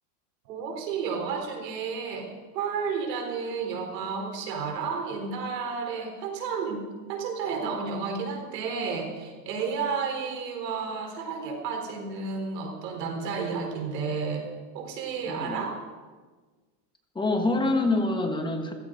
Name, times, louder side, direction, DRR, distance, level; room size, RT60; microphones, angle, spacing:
voice 1, 0.5-6.8 7.1-14.5 14.7-15.8, right 5 dB, 90° right, 3 dB, 4.3 m, -32 dB
voice 2, 15.3-15.6 17.1-18.7, left 2 dB, 10° left, 3 dB, 1.4 m, -26 dB
15.5 x 15.0 x 5.1 m, 1.4 s
supercardioid pair, 145°, 47 cm